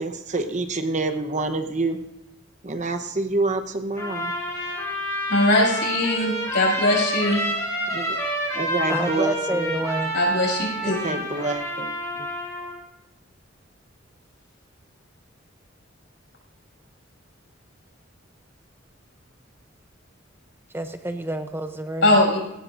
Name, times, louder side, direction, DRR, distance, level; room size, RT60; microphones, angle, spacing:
voice 1, 0.0-2.0 2.6-4.3 7.9-8.2 8.5-9.8 10.8-12.3, right 3 dB, 40° right, 6 dB, 1.0 m, -27 dB
Trumpet, 4.0-12.7, equal, 15° left, 6.6 m, -29 dB
voice 2, 5.3-7.4 10.1-11.0 22.0-22.4, left 1 dB, 65° left, -1 dB, 6.8 m, -20 dB
voice 3, 8.9-10.1 20.7-22.1, right 1 dB, 10° right, 7 dB, 0.6 m, -28 dB
21.0 x 17.0 x 2.6 m, 0.89 s
head